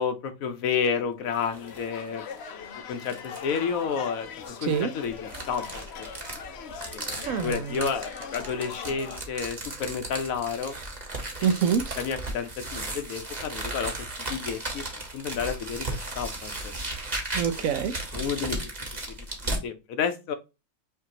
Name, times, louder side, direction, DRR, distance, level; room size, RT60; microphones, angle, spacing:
voice 1, 0.0-2.2 2.9-6.1 6.9-10.7 11.4-11.5 12.0-16.7 18.1-18.7 19.6-20.4, left 6 dB, 75° left, 1.2 m, -31 dB
sound 1, 1.3-1.9 2.3-2.4 3.0-3.6 4.4-19.6, right 2 dB, 30° right, 1.2 m, -36 dB
sound 2, 1.5-9.2, left 6 dB, 55° left, 0.8 m, -41 dB
voice 2, 4.6-4.9 7.2-7.9 11.4-12.0 17.3-18.0, right 7 dB, 75° right, 1.0 m, -26 dB
5.6 x 2.7 x 2.8 m
omnidirectional pair, 1.5 m